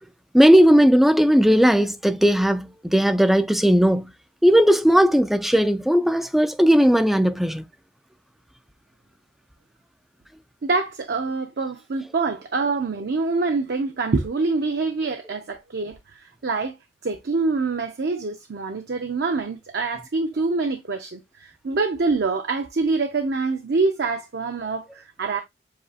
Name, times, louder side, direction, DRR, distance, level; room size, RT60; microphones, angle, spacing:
voice 1, 0.3-4.1 4.4-7.6, equal, ahead, 0.3 m, -17 dB
voice 2, 10.6-16.0 16.4-16.8 17.0-25.4, right 3 dB, 60° right, 0.6 m, -25 dB
7.6 x 2.7 x 2.4 m
head